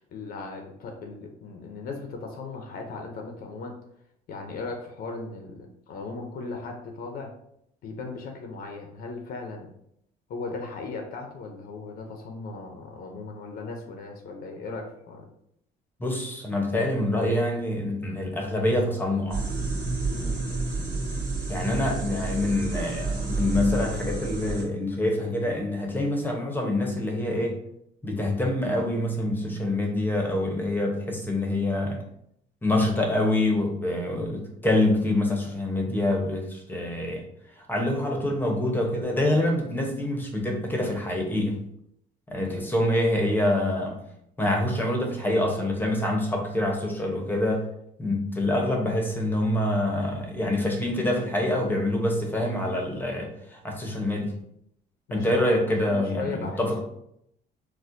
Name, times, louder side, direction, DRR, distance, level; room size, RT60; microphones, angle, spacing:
voice 1, 0.0-3.8 4.3-7.3 7.8-9.7 10.3-15.3 20.1-20.4 42.5-42.7 55.1-55.4 55.8-56.7, left 3 dB, 60° left, 2 dB, 0.6 m, -37 dB
voice 2, 16.0-19.4 21.5-27.6 28.0-32.0 32.6-37.2 37.7-41.6 42.3-44.0 44.4-47.6 48.0-54.3 55.1-56.8, left 1 dB, 10° left, 0 dB, 0.8 m, -26 dB
sound 1, 19.3-24.6, right 3 dB, 50° right, 1.4 m, -30 dB
4.2 x 2.2 x 2.5 m, 0.75 s
cardioid pair, 110°, 17 cm